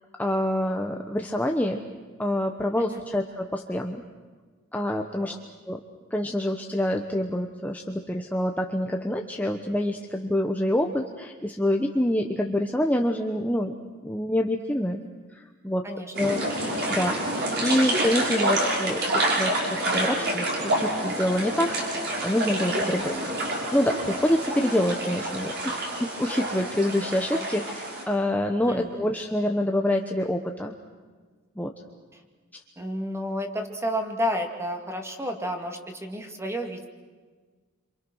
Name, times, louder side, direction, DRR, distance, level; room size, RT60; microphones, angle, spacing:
voice 1, 0.2-1.8 2.2-4.0 4.7-5.3 5.7-5.8 6.1-13.7 14.0-15.0 15.3-15.8 16.2-16.5 16.9-23.4 23.7-30.7 31.6-31.7, left 1 dB, 10° left, 3 dB, 1.1 m, -26 dB
voice 2, 15.8-16.3 22.9-23.0 28.7-29.0 32.1-32.2 32.8-36.9, equal, 15° right, 3 dB, 2.5 m, -31 dB
sound 1, 16.1-28.0, right 1 dB, 50° right, 6.4 m, -28 dB
28.0 x 27.0 x 6.4 m, 1.5 s
head